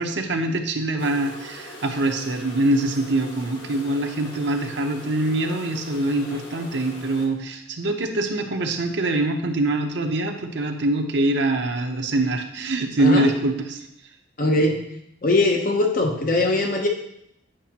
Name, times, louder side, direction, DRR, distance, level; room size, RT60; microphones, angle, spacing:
voice 1, 0.0-13.8, right 2 dB, 65° right, 4 dB, 0.8 m, -24 dB
sound 1, 1.0-7.3, left 1 dB, 70° left, 1.6 m, -41 dB
voice 2, 14.4-14.8 15.2-16.9, left 2 dB, 45° left, 2 dB, 0.8 m, -20 dB
8.8 x 6.0 x 2.9 m, 0.77 s
head